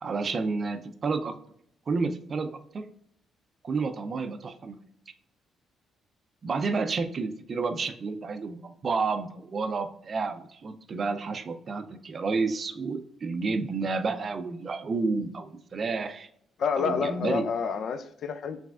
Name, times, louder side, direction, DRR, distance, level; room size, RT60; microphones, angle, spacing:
voice 1, 0.0-1.3 1.9-2.9 3.6-4.8 6.4-16.3 16.8-17.5, right 4 dB, 45° right, 0.4 m, -30 dB
voice 2, 16.6-18.6, left 6 dB, 60° left, 0.4 m, -29 dB
4.8 x 3.3 x 2.3 m
cardioid pair, 90°, 0 cm